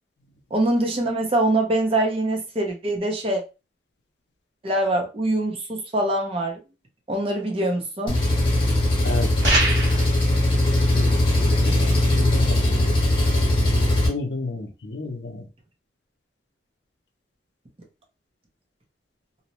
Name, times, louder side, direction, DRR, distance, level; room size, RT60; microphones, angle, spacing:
voice 1, 0.5-3.4 4.6-6.6 7.1-8.2, right 1 dB, 30° right, 0.6 m, -23 dB
Engine, 8.1-14.1, left 1 dB, 30° left, 1.1 m, -20 dB
voice 2, 9.0-9.3 10.9-12.9 14.1-15.4, left 3 dB, 70° left, 0.6 m, -32 dB
sound 1, 9.4-10.2, right 2 dB, 70° right, 1.3 m, -22 dB
2.6 x 2.0 x 2.9 m
head